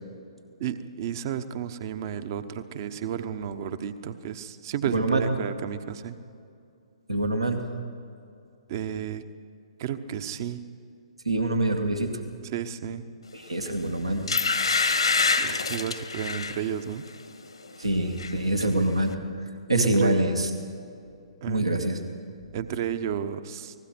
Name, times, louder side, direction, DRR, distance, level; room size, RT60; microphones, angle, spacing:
voice 1, 0.6-6.2 8.7-9.2 9.8-10.6 12.4-13.0 15.4-17.0 19.7-20.2 21.4-21.7 22.5-23.7, right 9 dB, 40° right, 11 dB, 1.2 m, -32 dB
voice 2, 4.9-5.2 7.1-7.6 11.3-12.1 13.3-14.3 17.8-19.1 19.4-20.5 21.5-22.0, right 1 dB, 80° right, 4 dB, 2.2 m, -25 dB
sound 1, 13.6-13.8 14.3-16.6 17.1-17.3 17.6-18.3 18.6-18.7, left 4 dB, 75° left, 1.7 m, -26 dB
29.5 x 20.0 x 4.6 m, 2.5 s
figure-of-eight pair, 125°, 3 cm